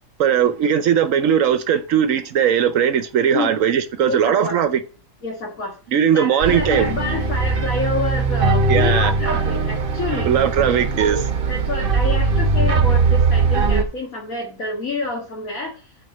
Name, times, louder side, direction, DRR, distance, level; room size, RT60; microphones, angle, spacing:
voice 1, 0.2-4.8 5.9-6.9 8.7-9.1 10.3-11.3, right 8 dB, 75° right, 1.1 m, -18 dB
voice 2, 4.1-4.6 5.2-5.8 6.1-10.3 11.5-15.7, left 2 dB, 80° left, 2.1 m, -27 dB
sound 1, 6.4-13.8, right 4 dB, 45° right, 1.0 m, -20 dB
7.7 x 4.6 x 6.6 m
omnidirectional pair, 1.4 m